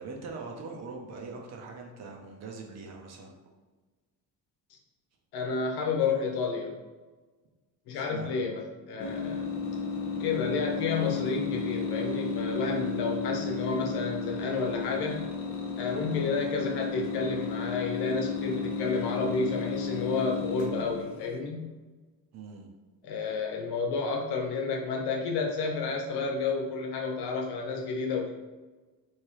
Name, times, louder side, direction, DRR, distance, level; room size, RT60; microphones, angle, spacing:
voice 1, 0.0-3.4 7.9-8.4 22.3-22.7, right 4 dB, 40° right, 1 dB, 0.7 m, -42 dB
voice 2, 5.3-6.7 7.9-9.5 10.2-15.3 15.8-21.7 23.0-28.3, left 4 dB, 70° left, 1 dB, 1.0 m, -31 dB
sound 1, 9.0-21.3, left 5 dB, 35° left, 0.6 m, -33 dB
3.5 x 3.3 x 4.6 m, 1.3 s
cardioid pair, 170°, 41 cm